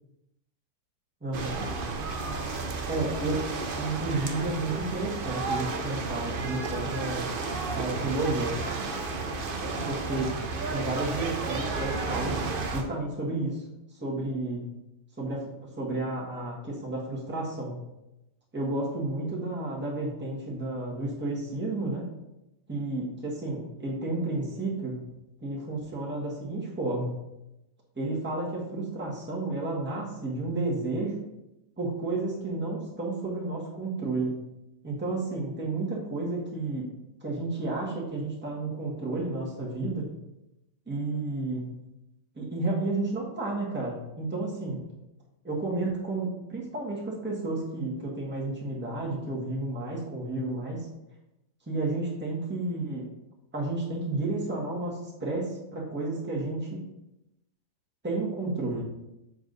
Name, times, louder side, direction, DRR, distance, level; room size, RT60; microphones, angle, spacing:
voice 1, 1.2-1.6 2.9-3.4 3.8-7.3 7.7-8.6 9.6-10.4 10.7-12.5 12.7-13.6 14.0-14.6 15.2-15.4 15.8-17.8 18.5-22.1 22.7-25.0 25.4-27.1 28.0-31.2 31.8-34.4 34.8-36.9 37.2-40.1 40.9-41.7 42.3-44.8 45.4-50.9 51.7-53.1 53.5-56.8 58.0-58.8, right 2 dB, 5° right, -4 dB, 1.5 m, -31 dB
sound 1, 1.3-12.8, right 3 dB, 70° right, 0.5 m, -32 dB
7.3 x 4.6 x 4.1 m, 0.91 s
omnidirectional pair, 2.0 m